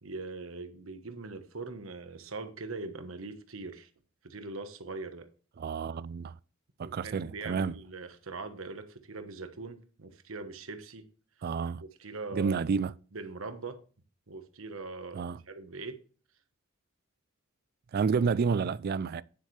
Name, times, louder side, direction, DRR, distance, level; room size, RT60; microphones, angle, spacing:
voice 1, 0.0-3.9 4.2-5.3 6.8-11.1 11.8-13.8 14.3-16.0, right 3 dB, 75° right, 1.2 m, -41 dB
voice 2, 5.6-6.3 6.8-7.7 11.4-11.8 12.3-12.9 15.1-15.4 17.9-19.2, right 5 dB, 50° right, 0.3 m, -30 dB
9.5 x 7.6 x 3.3 m
head